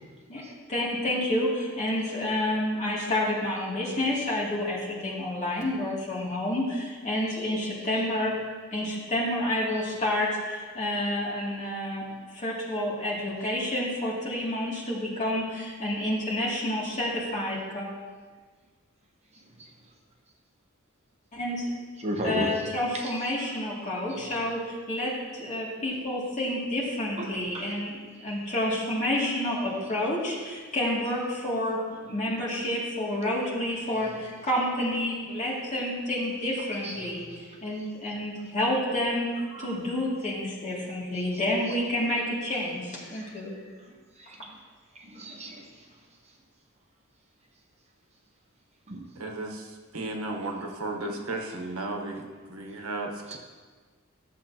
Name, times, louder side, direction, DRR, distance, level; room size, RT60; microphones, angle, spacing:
voice 1, 0.7-8.3 8.7-12.0 12.3-17.9 21.3-21.6 22.2-31.8 32.1-37.2 37.6-43.5, left 1 dB, 35° left, -5 dB, 2.4 m, -29 dB
voice 2, 22.0-22.6 22.9-23.2 24.1-24.2 27.2-27.8 34.2-34.3 36.6-37.1 39.5-39.7 41.3-41.4 44.2-44.6 45.0-45.7 48.9-49.0 51.0-51.2 53.3-53.4, right 1 dB, 30° right, 1 dB, 0.9 m, -35 dB
voice 3, 49.2-53.4, right 2 dB, 85° right, 2 dB, 1.1 m, -34 dB
14.0 x 7.4 x 2.9 m, 1.5 s
head